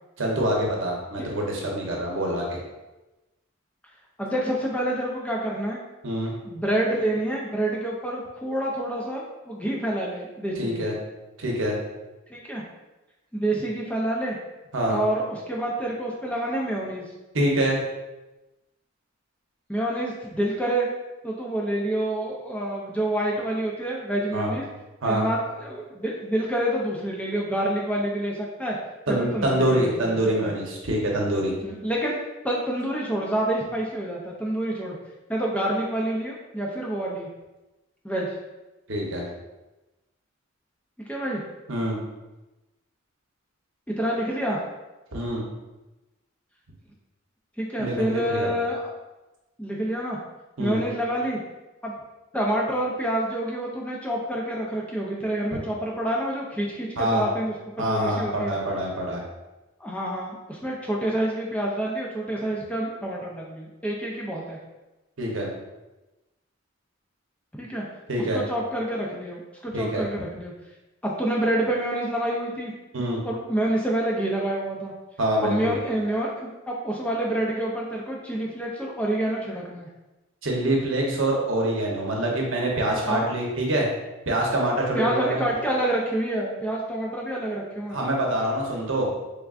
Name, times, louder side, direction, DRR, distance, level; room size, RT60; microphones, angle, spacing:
voice 1, 0.2-2.6 6.0-6.3 10.6-10.9 11.4-11.8 14.7-15.0 17.3-17.8 24.3-24.5 25.0-25.3 29.1-31.5 38.9-39.2 41.7-42.0 45.1-45.5 47.8-48.5 50.6-50.8 57.0-57.3 57.8-59.2 65.2-65.5 68.1-68.4 69.7-70.1 72.9-73.2 75.2-75.7 80.4-83.9 84.3-85.4 87.9-89.1, right 1 dB, 65° right, -1 dB, 0.8 m, -25 dB
voice 2, 4.2-5.8 6.4-10.8 12.3-12.6 13.3-14.4 14.9-17.0 19.7-20.9 21.2-24.6 25.0-28.8 29.1-30.5 31.6-32.2 32.4-35.0 35.3-37.3 38.0-38.4 41.1-41.4 43.9-44.6 47.6-48.9 49.6-50.2 50.6-51.4 51.8-51.9 52.3-57.5 57.9-58.6 59.8-64.6 67.5-67.8 68.3-70.5 71.0-72.7 73.2-74.9 75.4-79.9 83.1-83.3 84.9-88.0, right 1 dB, 5° left, -3 dB, 0.4 m, -27 dB
3.6 x 3.4 x 2.4 m, 1.1 s
head